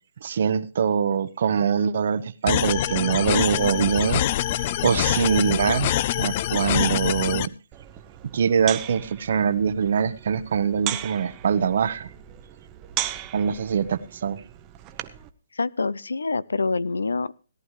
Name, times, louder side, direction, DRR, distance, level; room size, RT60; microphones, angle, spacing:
voice 1, 0.2-4.2 4.8-5.9 6.2-7.5 8.3-12.1 13.3-14.4, right 7 dB, 60° right, 14 dB, 0.9 m, -23 dB
sound 1, 2.5-7.5, left 12 dB, 40° left, 0.5 m, -25 dB
sound 2, 7.7-15.3, right 13 dB, 25° right, 0.9 m, -37 dB
voice 2, 15.5-17.4, left 4 dB, 90° left, 20 dB, 0.6 m, -26 dB
17.5 x 11.0 x 3.2 m, 0.37 s
hypercardioid pair, 150°, 0 cm